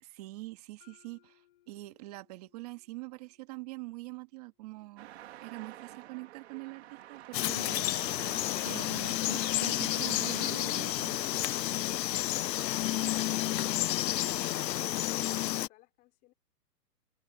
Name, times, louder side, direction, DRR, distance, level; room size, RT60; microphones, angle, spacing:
voice 1, 0.0-5.1 5.4-8.1 8.6-11.2, right 21 dB, 25° right, 1.7 m, -44 dB
Mallet percussion, 0.8-4.8, left 16 dB, 35° left, 6.4 m, -69 dB
Traffic noise roadway noise, 5.0-11.5, right 13 dB, 40° right, 2.8 m, -50 dB
Frog, 7.3-15.7, left 14 dB, 85° left, 0.6 m, -31 dB
voice 2, 12.8-12.9, left 17 dB, 15° left, 3.1 m, -62 dB
open air
hypercardioid pair, 170°, 49 cm